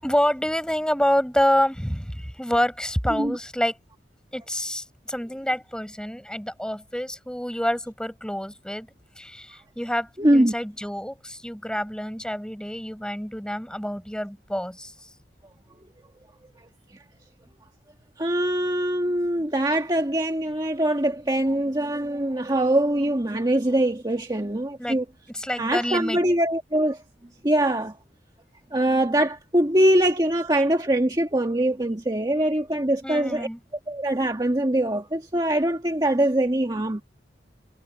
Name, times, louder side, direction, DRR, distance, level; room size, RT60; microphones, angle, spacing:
voice 1, 0.0-3.8 4.3-8.9 9.2-14.9 24.8-25.0 25.3-26.2 33.0-33.6, equal, 5° left, 7.0 m, -27 dB
voice 2, 10.2-10.5 18.2-25.0 25.6-27.0 27.4-27.9 28.7-33.5 33.9-37.0, right 1 dB, 25° right, 1.6 m, -23 dB
head